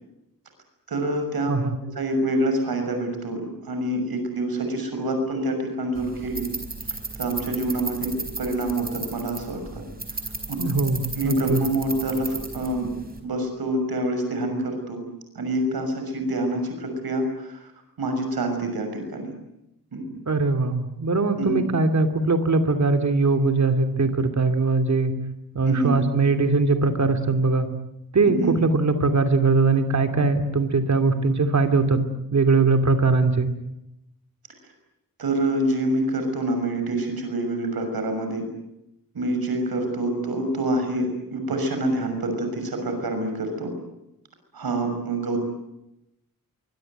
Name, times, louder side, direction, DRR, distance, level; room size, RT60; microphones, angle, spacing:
voice 1, 0.9-1.5 2.0-6.5 7.2-9.8 10.1-10.2 10.5-10.6 11.2-12.9 13.2-15.0 15.3-17.7 18.0-19.3 19.9-20.1 21.4-21.7 25.6-26.0 28.2-28.5 35.2-38.4 39.1-43.7 44.5-45.4, right 1 dB, 85° right, 5 dB, 6.3 m, -26 dB
sound 1, 5.9-13.2, right 3 dB, 25° right, 4.6 m, -35 dB
voice 2, 10.6-11.6 20.3-25.1 25.5-27.7 28.1-32.0 32.3-33.5, right 3 dB, 50° right, 7 dB, 2.9 m, -21 dB
24.5 x 22.5 x 9.3 m, 0.87 s
wide cardioid pair, 170°, 36 cm